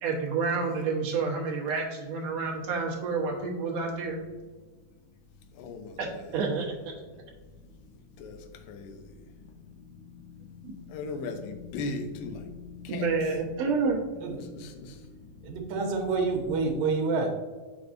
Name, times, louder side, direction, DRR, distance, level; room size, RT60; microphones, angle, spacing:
voice 1, 0.0-4.2 6.0-6.1 6.3-6.7 10.6-10.7 12.9-14.0, right 4 dB, 65° right, -2 dB, 2.0 m, -29 dB
sound 1, 3.0-16.7, left 6 dB, 60° left, 2.6 m, -49 dB
voice 2, 5.5-6.4 8.2-9.2 10.9-12.5 12.8-13.1 14.3-15.1, left 3 dB, 85° left, 5 dB, 2.4 m, -38 dB
voice 3, 15.4-17.3, right 4 dB, 80° right, 3 dB, 2.7 m, -28 dB
6.7 x 6.1 x 2.6 m, 1.4 s
omnidirectional pair, 3.9 m